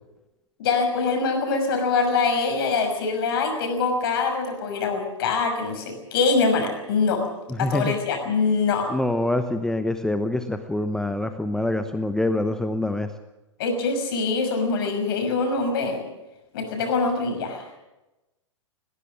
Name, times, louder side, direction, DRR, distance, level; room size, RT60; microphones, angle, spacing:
voice 1, 0.6-7.2 7.6-8.9 13.6-16.0 16.5-17.6, left 4 dB, 50° left, 5 dB, 6.0 m, -24 dB
voice 2, 7.5-7.9 8.9-13.1, left 1 dB, 5° left, 9 dB, 0.9 m, -25 dB
19.5 x 18.0 x 7.6 m, 1.0 s
figure-of-eight pair, 105°, 16 cm